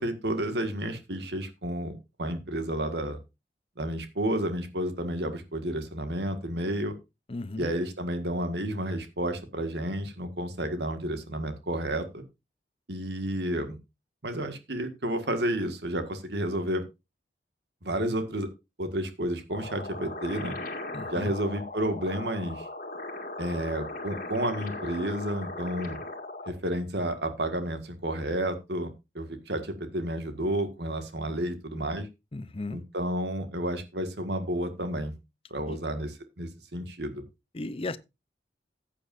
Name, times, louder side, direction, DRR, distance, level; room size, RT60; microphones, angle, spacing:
voice 1, 0.0-3.2 3.8-7.0 7.6-12.2 12.9-13.8 14.2-16.8 17.8-18.5 18.8-20.5 21.1-22.7 23.4-26.0 26.5-32.1 32.7-35.1 35.5-37.2, right 1 dB, 75° right, 1.8 m, -31 dB
voice 2, 7.3-7.7 20.9-21.3 32.3-32.8 35.7-35.8 37.5-38.0, left 2 dB, 30° left, 0.6 m, -35 dB
sound 1, 19.5-26.5, left 2 dB, 50° left, 1.9 m, -38 dB
14.5 x 8.5 x 2.6 m
head